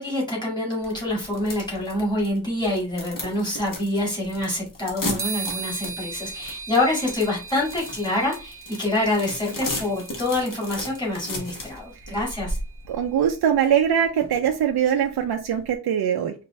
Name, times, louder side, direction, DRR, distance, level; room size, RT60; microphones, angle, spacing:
voice 1, 0.0-12.6, left 1 dB, 10° left, -5 dB, 1.9 m, -26 dB
sound 1, 0.8-15.7, left 1 dB, 55° left, 1.1 m, -36 dB
sound 2, 5.2-12.8, right 5 dB, 35° right, 0.9 m, -38 dB
voice 2, 12.9-16.3, right 9 dB, 80° right, 4 dB, 0.5 m, -22 dB
4.6 x 2.5 x 3.1 m, 0.32 s
wide cardioid pair, 170°, 38 cm